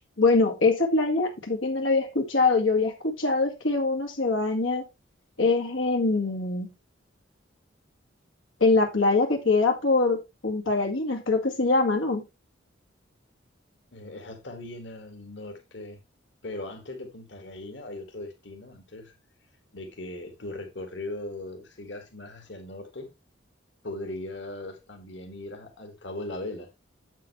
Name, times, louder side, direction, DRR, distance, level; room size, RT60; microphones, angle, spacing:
voice 1, 0.0-4.8 5.4-6.7 8.6-12.2, left 3 dB, 85° left, 2.0 m, -23 dB
voice 2, 13.9-16.0 16.4-19.1 19.7-23.1 23.8-26.7, left 2 dB, 65° left, 2.0 m, -39 dB
8.0 x 7.5 x 3.2 m
head